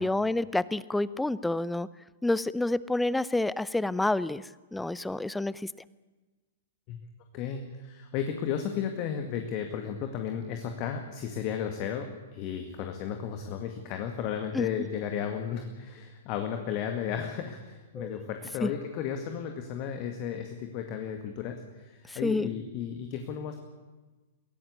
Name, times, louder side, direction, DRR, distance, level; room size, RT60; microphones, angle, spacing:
voice 1, 0.0-1.9 2.2-4.4 4.7-5.7 14.5-14.7 18.0-18.2 18.6-18.7 22.1-22.5, left 2 dB, 5° left, 19 dB, 0.6 m, -28 dB
voice 2, 7.3-23.6, left 8 dB, 35° left, 5 dB, 2.1 m, -34 dB
22.5 x 17.0 x 8.5 m, 1.2 s
figure-of-eight pair, 105°, 0 cm